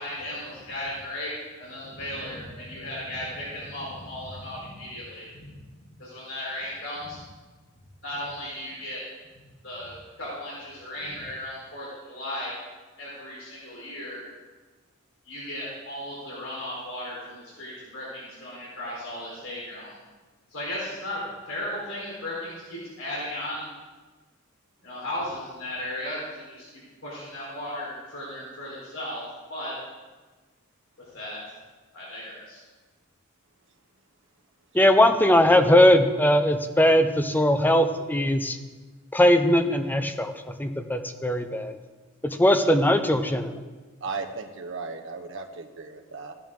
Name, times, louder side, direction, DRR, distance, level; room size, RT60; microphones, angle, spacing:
voice 1, 0.0-1.3 1.6-5.5 6.0-7.2 8.0-9.0 9.6-12.6 13.0-14.2 15.3-20.0 20.5-21.2 21.5-23.7 24.8-26.7 27.0-29.2 29.5-29.7 31.0-31.4 31.9-32.6, left 1 dB, 70° left, -6 dB, 4.2 m, -36 dB
voice 2, 34.7-38.6 39.1-41.7 42.2-43.6, left 1 dB, 10° left, 8 dB, 0.7 m, -20 dB
voice 3, 44.0-46.3, right 4 dB, 65° right, 4 dB, 1.3 m, -36 dB
15.0 x 10.5 x 3.8 m, 1.3 s
head